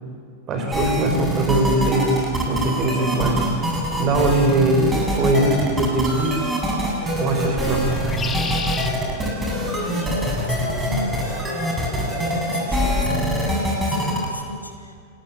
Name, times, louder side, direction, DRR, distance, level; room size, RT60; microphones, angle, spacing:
voice 1, 0.5-3.5 4.0-6.5 7.2-7.9, right 2 dB, 30° right, 5 dB, 5.3 m, -21 dB
sound 1, 0.7-14.3, equal, 10° right, 7.4 m, -24 dB
sound 2, 1.5-13.1, right 3 dB, 45° right, 7.3 m, -43 dB
sound 3, 5.9-6.2 7.9-8.9 9.8-10.3, left 5 dB, 20° left, 2.0 m, -32 dB
voice 2, 9.7-15.0, left 1 dB, 85° left, 5 dB, 2.6 m, -33 dB
28.5 x 20.0 x 8.9 m, 2.2 s
figure-of-eight pair, 90°, 0 cm